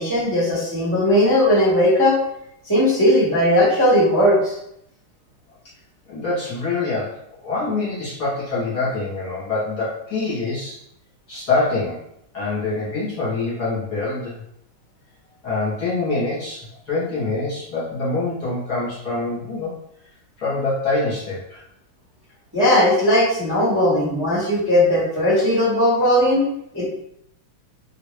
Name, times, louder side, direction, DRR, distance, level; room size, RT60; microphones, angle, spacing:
voice 1, 0.0-2.2 2.6-4.5 22.5-26.4 26.7-26.9, left 1 dB, 20° right, -10 dB, 0.7 m, -17 dB
voice 2, 6.1-10.8 11.3-12.0 12.3-14.4 15.4-19.7 20.4-21.6, left 3 dB, 55° left, -8 dB, 1.5 m, -25 dB
3.4 x 2.3 x 3.1 m, 0.76 s
omnidirectional pair, 2.4 m